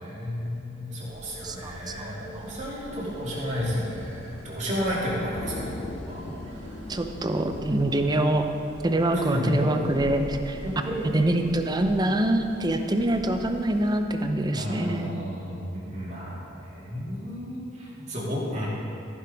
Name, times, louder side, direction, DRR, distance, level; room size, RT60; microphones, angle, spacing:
voice 1, 0.0-6.8 9.1-9.7 10.6-11.2 14.5-18.7, equal, 35° right, -6 dB, 2.7 m, -32 dB
sound 1, 1.0-14.0, equal, 60° right, 1.7 m, -44 dB
voice 2, 1.4-2.4 5.6-5.7 6.3-6.4 6.9-8.5 8.8-10.2 10.5-10.6 11.1-15.1, right 1 dB, 20° right, 6 dB, 0.6 m, -25 dB
sound 2, 3.6-4.6 4.9-5.0 5.3-8.7, left 3 dB, 30° left, 0.3 m, -40 dB
14.0 x 5.9 x 5.1 m, 2.8 s
head